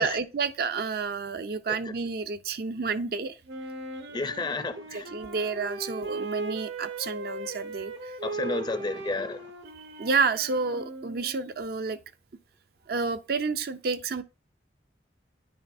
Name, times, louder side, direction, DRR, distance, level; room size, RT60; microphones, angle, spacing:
voice 1, 0.0-3.4 4.0-4.1 4.9-8.1 9.8-12.0 12.9-14.2, right 4 dB, 55° right, 0.5 m, -30 dB
Wind instrument woodwind instrument, 3.5-11.5, right 2 dB, 80° right, 1.5 m, -38 dB
voice 2, 4.1-5.1 8.2-9.5, left 3 dB, 25° left, 0.5 m, -31 dB
9.7 x 5.5 x 2.6 m
head